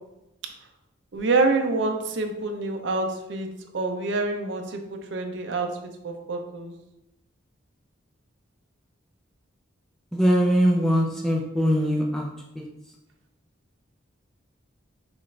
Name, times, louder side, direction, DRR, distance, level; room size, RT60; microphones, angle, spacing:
voice 1, 1.1-3.5 3.7-5.7 6.0-6.7, right 3 dB, 65° right, 4 dB, 0.6 m, -26 dB
voice 2, 10.1-12.3, equal, ahead, -2 dB, 0.5 m, -21 dB
6.1 x 2.5 x 3.2 m, 0.88 s
head